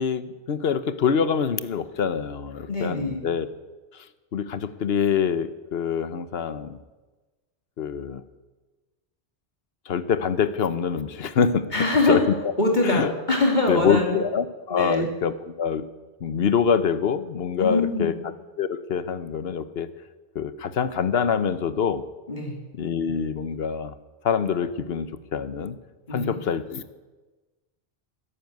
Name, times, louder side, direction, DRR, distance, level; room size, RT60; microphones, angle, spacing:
voice 1, 0.0-3.5 4.3-6.8 7.8-8.2 9.9-11.7 12.1-12.2 12.8-13.1 13.7-15.9 16.2-18.1 18.6-19.9 20.3-22.0 22.8-23.9 24.2-25.1 25.3-25.8 26.1-26.8, left 7 dB, 65° left, 14 dB, 1.1 m, -25 dB
voice 2, 2.7-3.2 11.7-12.2 12.6-14.2 14.7-15.1 17.6-18.2 22.3-22.6 26.1-26.4, left 2 dB, 40° left, 2 dB, 3.0 m, -23 dB
14.0 x 10.0 x 9.2 m, 1.2 s
omnidirectional pair, 1.2 m